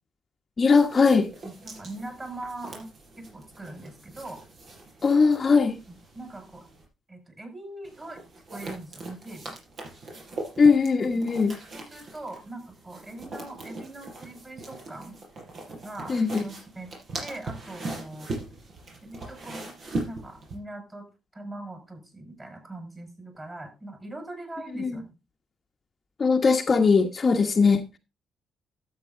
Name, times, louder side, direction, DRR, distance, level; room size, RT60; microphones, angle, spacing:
voice 1, 0.6-1.3 5.0-5.8 10.6-11.5 16.1-16.4 24.8-25.0 26.2-28.0, left 4 dB, 40° left, 1.2 m, -20 dB
sound 1, 0.7-6.9 7.8-20.6, right 2 dB, 55° right, 5.2 m, -40 dB
voice 2, 1.4-2.9 3.2-4.4 5.9-6.6 7.1-8.2 8.5-9.5 11.1-11.2 11.7-15.2 15.8-16.2 16.4-16.9 17.2-18.3 19.0-19.7 20.0-21.0 21.3-25.1, right 2 dB, 20° right, 5.4 m, -41 dB
12.5 x 7.9 x 3.8 m
cardioid pair, 90°, 0 cm